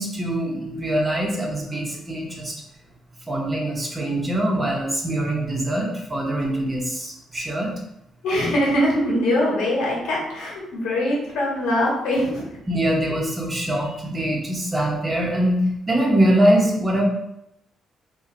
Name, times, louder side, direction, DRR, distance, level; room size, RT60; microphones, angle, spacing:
voice 1, 0.0-2.5 3.3-7.7 12.7-17.0, right 1 dB, 20° right, -1 dB, 0.9 m, -23 dB
voice 2, 8.2-12.4, left 1 dB, 85° left, -4 dB, 1.4 m, -22 dB
2.9 x 2.8 x 3.8 m, 0.80 s
cardioid pair, 90°, 0 cm